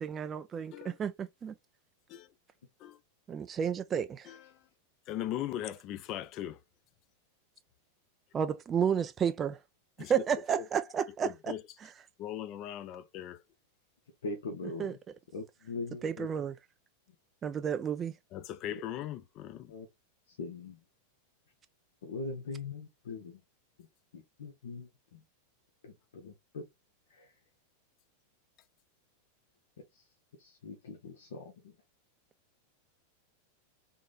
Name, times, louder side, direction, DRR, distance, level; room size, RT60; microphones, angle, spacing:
voice 1, 0.0-1.5 3.3-4.3 8.3-9.6 10.0-11.5 11.8-11.9 14.8-15.0 16.0-16.6 17.4-18.1, right 8 dB, 25° right, 0.3 m, -32 dB
voice 2, 5.1-6.6 10.0-10.1 10.5-10.7 11.2-11.6 12.2-13.4 18.3-19.7, left 12 dB, 40° left, 0.6 m, -39 dB
voice 3, 14.2-15.0 15.3-16.3 18.7-18.8 19.7-19.9 20.4-20.8 22.0-23.4 24.1-25.2 25.8-26.6 27.1-27.3 30.4-31.7, left 3 dB, 60° left, 0.9 m, -41 dB
3.6 x 3.6 x 2.4 m
figure-of-eight pair, 90°, 0 cm